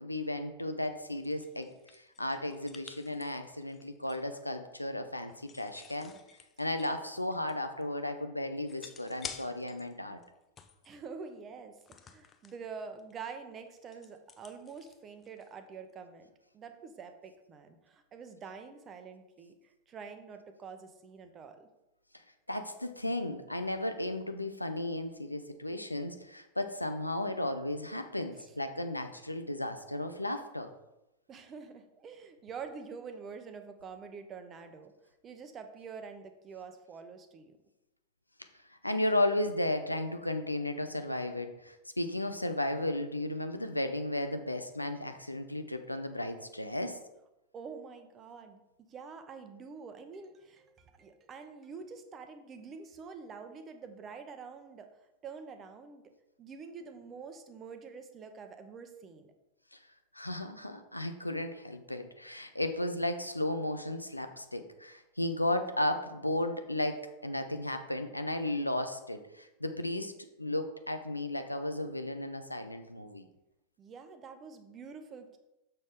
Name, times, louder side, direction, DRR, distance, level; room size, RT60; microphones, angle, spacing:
voice 1, 0.0-6.1 6.6-10.2 22.5-30.7 38.7-47.0 59.7-59.8 60.1-70.1 70.4-73.3, left 1 dB, 85° left, 7 dB, 0.6 m, -34 dB
sound 1, 0.8-4.4 5.2-8.1 8.7-9.9 10.2-11.0 11.8-12.6 13.0-13.3 13.5-15.7, left 7 dB, 25° left, 0.6 m, -51 dB
voice 2, 10.8-21.7 31.3-34.9 35.2-37.6 47.5-54.9 55.2-56.0 56.4-59.3 73.8-75.4, right 5 dB, 25° right, 8 dB, 0.9 m, -46 dB
6.6 x 6.3 x 3.7 m, 0.93 s
figure-of-eight pair, 90°, 0 cm